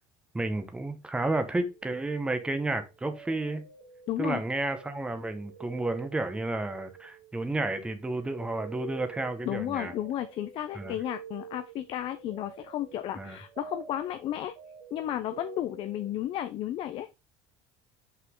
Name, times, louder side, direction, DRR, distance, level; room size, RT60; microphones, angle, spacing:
voice 1, 0.3-3.6 4.2-9.9 10.7-10.9 13.2-13.4, right 2 dB, 10° right, 0.9 m, -31 dB
sound 1, 1.6-7.6 7.8-16.4, right 8 dB, 75° right, 1.5 m, -48 dB
voice 2, 4.1-4.4 9.5-14.5 14.9-17.1, left 12 dB, 45° left, 0.6 m, -33 dB
5.9 x 5.8 x 3.7 m
cardioid pair, 135°, 12 cm